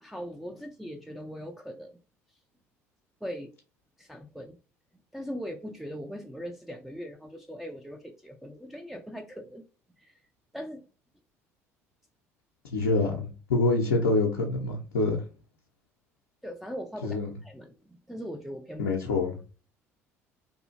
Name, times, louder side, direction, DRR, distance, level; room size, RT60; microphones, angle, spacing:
voice 1, 0.0-2.0 3.2-3.5 4.0-4.6 5.1-9.6 10.0-10.1 10.5-10.8 16.4-19.0, equal, ahead, 0.3 m, -40 dB
voice 2, 12.6-15.2 17.0-17.3 18.8-19.4, left 3 dB, 75° left, 0.5 m, -26 dB
2.6 x 2.4 x 2.4 m
figure-of-eight pair, 55°, 8 cm